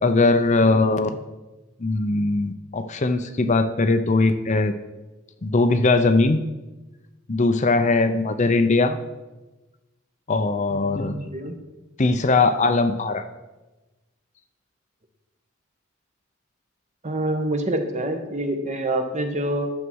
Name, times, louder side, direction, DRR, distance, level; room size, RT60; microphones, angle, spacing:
voice 1, 0.0-1.1 1.8-4.7 5.4-6.4 7.3-9.0 10.3-11.2 12.0-13.2, left 3 dB, 35° left, 9 dB, 0.6 m, -20 dB
voice 2, 0.6-1.0 10.7-11.6 17.0-19.7, right 1 dB, 35° right, 6 dB, 1.3 m, -27 dB
11.0 x 7.4 x 6.3 m, 1.1 s
head